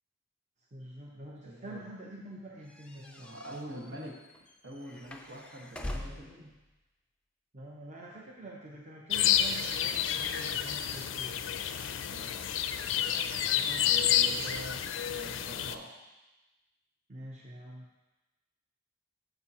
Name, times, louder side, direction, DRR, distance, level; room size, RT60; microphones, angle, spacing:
voice 1, 0.7-3.4 3.6-4.0 7.5-11.4 13.5-14.2 17.1-17.9, right 1 dB, 35° right, -3 dB, 0.8 m, -46 dB
voice 2, 1.4-1.8 3.2-4.2 4.6-6.5 12.0-12.3 13.8-15.9, right 1 dB, 70° right, -2 dB, 1.5 m, -45 dB
sound 1, 2.7-6.4, left 1 dB, 5° left, 0.4 m, -43 dB
sound 2, 9.1-15.7, left 9 dB, 75° left, 0.4 m, -29 dB
9.0 x 6.9 x 2.9 m, 1.1 s
head